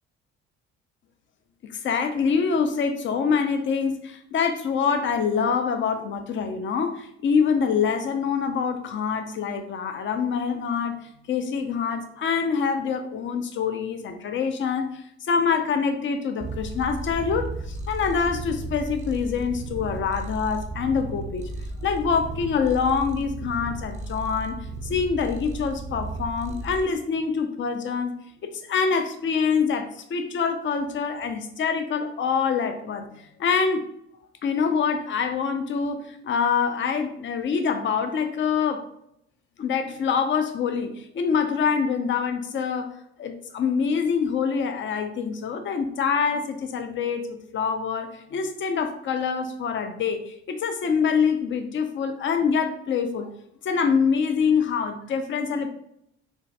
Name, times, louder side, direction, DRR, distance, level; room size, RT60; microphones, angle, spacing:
voice 1, 1.7-11.0 11.3-21.5 21.8-24.6 24.8-28.1 28.6-33.1 33.4-33.8 34.4-38.8 39.6-42.9 43.2-53.3 53.6-55.7, left 6 dB, 35° left, 7 dB, 0.5 m, -25 dB
Purr, 16.4-26.8, right 2 dB, 20° right, 0.5 m, -34 dB
3.7 x 2.2 x 2.7 m, 0.74 s
hypercardioid pair, 55°, 33 cm